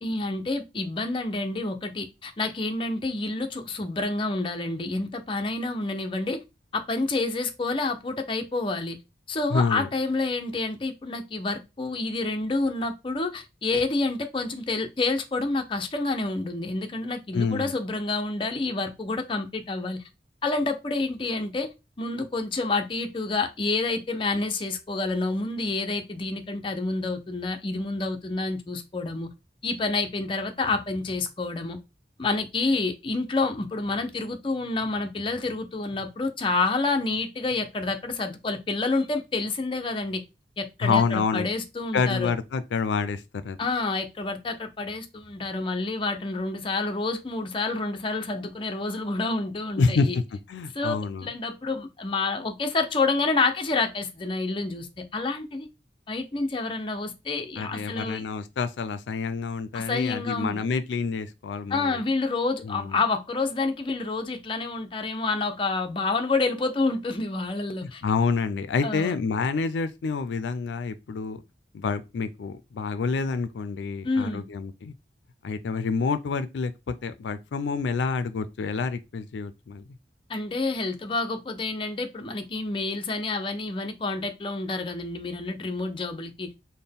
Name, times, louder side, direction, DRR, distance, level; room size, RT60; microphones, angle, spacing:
voice 1, 0.0-6.4 6.7-9.0 9.3-20.0 20.4-21.7 22.0-29.3 29.6-31.8 32.2-40.2 40.6-42.3 43.6-50.2 50.7-50.9 51.2-55.7 56.1-58.2 59.7-60.6 61.7-68.0 68.8-69.2 74.0-74.4 80.3-86.5, left 3 dB, 30° left, 0.5 m, -28 dB
voice 2, 9.5-9.9 17.3-17.7 40.8-41.5 41.9-43.6 49.8-50.2 50.5-51.3 57.6-62.0 62.6-63.0 67.8-71.4 71.7-74.9 75.4-79.9, left 4 dB, 90° left, 0.4 m, -28 dB
4.2 x 2.1 x 3.4 m
head